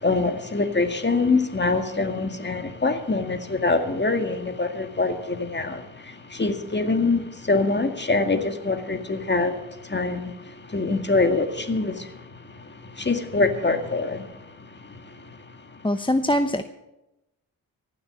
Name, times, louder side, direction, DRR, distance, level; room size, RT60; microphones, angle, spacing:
voice 1, 0.0-10.3 10.7-12.1 13.0-14.3, left 3 dB, 30° left, 2.0 m, -24 dB
voice 2, 15.8-16.6, left 1 dB, 15° left, 0.8 m, -22 dB
15.5 x 7.2 x 8.8 m
supercardioid pair, 45°, 36 cm